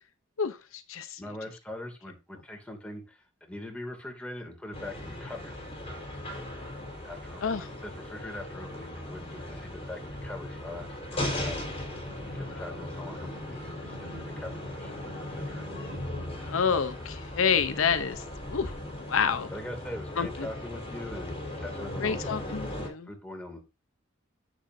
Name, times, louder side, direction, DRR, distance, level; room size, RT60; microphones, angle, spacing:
voice 1, 0.4-1.2 7.4-7.7 12.5-12.6 16.4-18.2 18.5-18.7 19.1-19.5 20.2-20.5 22.0-23.1, left 6 dB, 80° left, 0.7 m, -28 dB
voice 2, 1.2-5.6 7.0-11.6 12.3-15.8 19.5-22.4 23.1-23.6, left 1 dB, 5° left, 2.4 m, -42 dB
sound 1, 4.7-22.9, left 1 dB, 30° left, 4.0 m, -38 dB
10.0 x 7.9 x 2.6 m
head